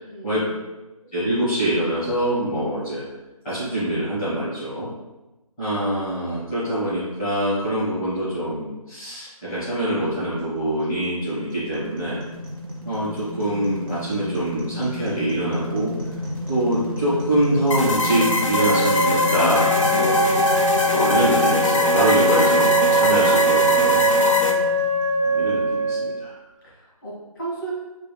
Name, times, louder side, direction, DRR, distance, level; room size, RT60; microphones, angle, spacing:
voice 1, 0.0-0.5 24.1-24.7 26.6-27.7, right 3 dB, 35° left, -8 dB, 1.5 m, -35 dB
voice 2, 1.1-3.0 3.4-4.9 5.6-12.2 12.8-15.9 16.5-20.2 20.9-24.0 25.2-26.4, right 1 dB, 5° left, -20 dB, 1.0 m, -24 dB
sound 1, 10.6-25.7, left 1 dB, 35° right, 1.1 m, -32 dB
sound 2, 17.7-24.5, left 2 dB, 60° left, 0.5 m, -22 dB
Wind instrument woodwind instrument, 18.5-26.2, right 1 dB, 55° right, 0.7 m, -21 dB
4.2 x 3.5 x 2.2 m, 1.1 s
figure-of-eight pair, 165°, 19 cm